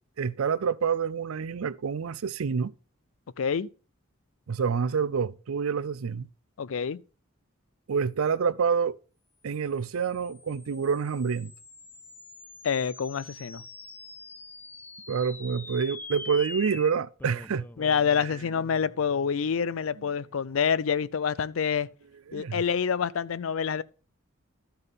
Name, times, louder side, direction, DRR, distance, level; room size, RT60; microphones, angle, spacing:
voice 1, 0.2-2.7 4.5-6.3 7.9-9.0 9.4-11.5 15.1-17.7 22.3-22.6, right 6 dB, 80° right, 0.5 m, -27 dB
voice 2, 3.4-3.7 6.6-7.0 12.6-13.6 17.8-21.9 22.3-23.8, left 6 dB, 70° left, 0.4 m, -27 dB
sound 1, 9.8-20.4, left 2 dB, 10° left, 0.3 m, -45 dB
12.5 x 5.5 x 4.0 m
head